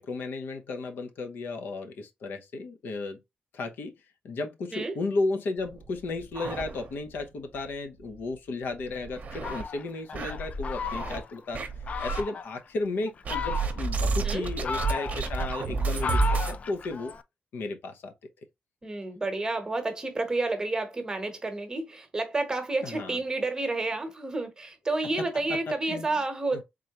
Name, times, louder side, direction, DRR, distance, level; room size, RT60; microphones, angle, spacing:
voice 1, 0.0-3.2 3.5-3.9 4.2-11.7 12.0-17.1 17.5-18.1 22.8-23.2 25.3-26.1 26.5-26.6, left 3 dB, 75° left, 0.8 m, -34 dB
sound 1, 5.6-7.2 7.5-7.6 8.0-8.1 8.7-9.6 10.1-11.2 11.5-12.2 13.2-16.6, right 4 dB, 50° right, 0.8 m, -30 dB
Fowl, 9.3-11.4 11.9-12.5 13.1-14.0 14.4-17.2, left 5 dB, 45° left, 0.3 m, -35 dB
voice 2, 18.8-26.6, right 2 dB, 20° right, 0.9 m, -30 dB
3.7 x 3.3 x 2.9 m
wide cardioid pair, 130°, 3 cm